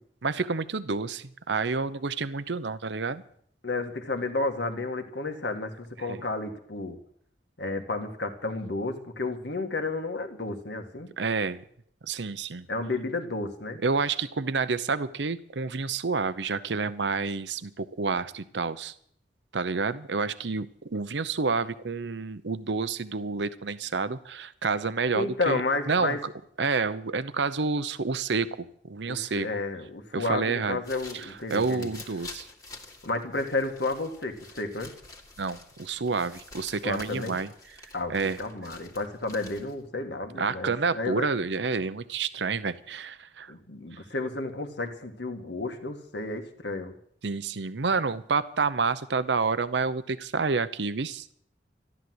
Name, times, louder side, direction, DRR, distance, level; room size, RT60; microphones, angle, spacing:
voice 1, 0.2-3.2 6.0-6.2 11.2-11.6 12.0-12.7 13.8-18.9 19.5-20.7 20.9-25.6 25.9-26.3 26.6-29.5 30.1-30.8 31.1-32.5 35.4-37.5 38.1-38.4 40.3-43.5 47.2-51.2, right 4 dB, 75° right, 14 dB, 0.8 m, -29 dB
voice 2, 3.6-7.0 7.6-11.1 12.7-13.8 25.1-26.2 29.1-31.9 33.0-34.9 36.8-37.4 37.9-41.3 43.5-46.9, left 2 dB, 70° left, 5 dB, 2.0 m, -32 dB
sound 1, 30.6-39.9, left 3 dB, 20° left, 2.2 m, -48 dB
14.0 x 12.0 x 7.9 m, 0.66 s
head